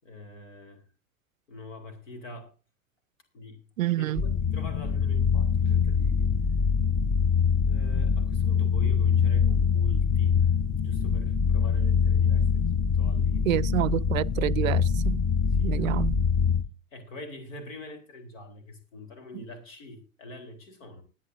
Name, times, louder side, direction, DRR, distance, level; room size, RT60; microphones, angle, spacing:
voice 1, 0.0-0.8 1.5-2.5 3.3-3.6 3.9-6.3 7.7-10.4 10.8-12.7 13.0-13.7 15.6-16.1 16.9-21.0, left 2 dB, 70° left, 3.8 m, -45 dB
voice 2, 3.8-4.2 13.4-15.2 15.6-16.2, right 15 dB, 70° right, 0.5 m, -28 dB
sound 1, 4.2-16.6, left 6 dB, 15° left, 0.7 m, -24 dB
21.0 x 9.9 x 2.7 m
figure-of-eight pair, 90°, 41 cm